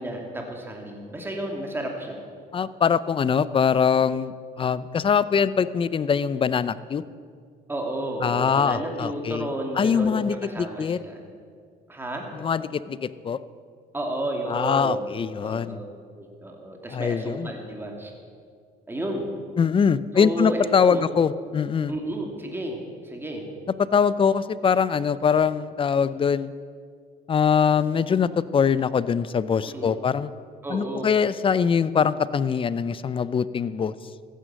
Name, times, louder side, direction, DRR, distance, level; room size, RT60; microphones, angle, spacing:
voice 1, 0.0-2.2 7.7-11.2 11.9-12.3 13.9-15.1 15.4-15.8 16.2-18.1 18.9-19.3 20.1-21.1 21.9-23.4 29.7-30.0 30.6-31.1, right 1 dB, 15° right, 1 dB, 2.5 m, -32 dB
voice 2, 2.5-7.0 8.2-9.5 9.8-11.0 12.4-13.4 14.5-15.8 16.9-17.5 19.6-21.9 23.9-26.5 27.3-30.3 30.7-33.9, left 6 dB, 30° left, 16 dB, 0.5 m, -23 dB
14.5 x 10.0 x 7.6 m, 2.1 s
cardioid pair, 110°, 17 cm